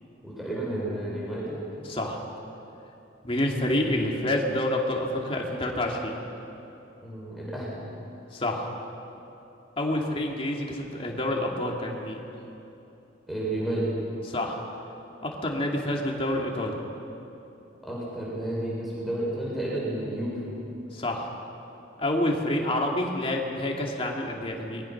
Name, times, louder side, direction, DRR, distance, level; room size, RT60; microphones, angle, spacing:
voice 1, 0.2-1.6 7.0-7.7 13.3-13.9 17.8-20.6, right 1 dB, ahead, -6 dB, 5.7 m, -31 dB
voice 2, 1.8-2.2 3.2-6.2 8.3-8.7 9.8-12.2 14.3-14.6 15.2-16.8 20.9-21.3 22.0-24.8, left 1 dB, 30° left, 0 dB, 2.5 m, -28 dB
25.0 x 21.0 x 6.0 m, 2.9 s
head